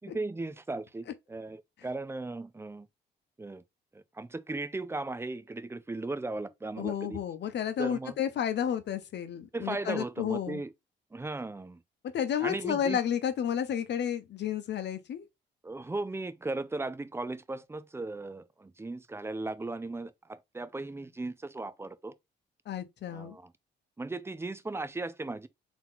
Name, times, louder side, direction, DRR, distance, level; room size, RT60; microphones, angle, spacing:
voice 1, 0.0-2.9 3.4-3.6 3.9-7.2 7.8-8.2 9.5-10.7 11.1-11.8 12.4-13.0 15.6-22.1 23.1-23.5 24.0-25.5, right 2 dB, 10° right, 0.5 m, -37 dB
voice 2, 6.8-10.6 12.1-15.2 22.7-23.4, left 9 dB, 60° left, 0.8 m, -31 dB
3.8 x 3.0 x 3.8 m
cardioid pair, 90°, 20 cm